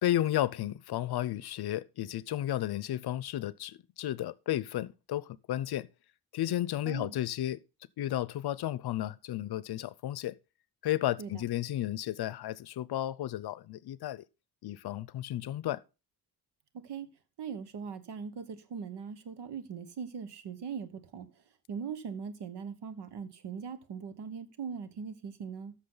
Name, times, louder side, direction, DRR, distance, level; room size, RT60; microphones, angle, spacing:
voice 1, 0.0-5.9 6.3-7.6 8.0-10.4 10.8-14.2 14.6-15.8, left 13 dB, 70° left, 0.6 m, -33 dB
voice 2, 17.4-25.7, right 6 dB, 85° right, 1.4 m, -40 dB
14.0 x 6.5 x 3.9 m
cardioid pair, 120°, 40 cm